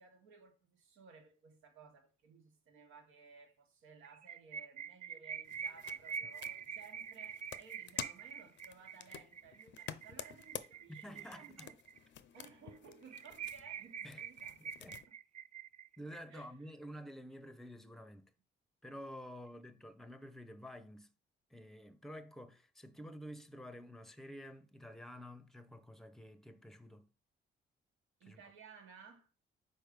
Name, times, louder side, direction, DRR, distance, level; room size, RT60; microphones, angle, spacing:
voice 1, 0.0-11.8 12.3-14.6 15.1-15.2 16.3-16.7 28.2-29.3, right 5 dB, 85° right, 1.5 m, -58 dB
sound 1, 4.0-12.0 12.4-12.5 12.7-12.8 13.1-16.2, right 7 dB, 40° right, 0.4 m, -45 dB
sound 2, 5.4-15.0, left 10 dB, 65° left, 0.5 m, -50 dB
voice 2, 10.9-11.7 14.0-14.2 14.6-15.1 16.0-18.3 18.8-21.1 21.5-27.1 28.2-28.4, equal, ahead, 0.7 m, -50 dB
4.7 x 4.4 x 5.0 m
cardioid pair, 90°, 20 cm